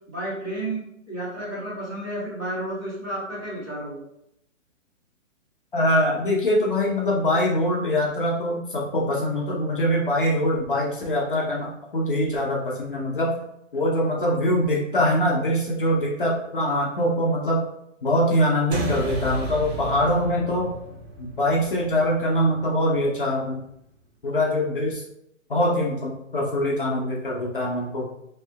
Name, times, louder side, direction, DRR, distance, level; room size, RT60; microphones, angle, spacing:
voice 1, 0.1-4.0, right 1 dB, 15° right, -9 dB, 0.8 m, -32 dB
voice 2, 5.7-13.3 13.7-17.6 18.0-20.7 21.2-23.6 24.2-25.0 25.5-28.0, equal, 40° left, -3 dB, 0.6 m, -23 dB
sound 1, 18.7-23.5, right 2 dB, 55° right, 0.7 m, -34 dB
3.3 x 2.8 x 2.7 m, 0.77 s
hypercardioid pair, 175°, 39 cm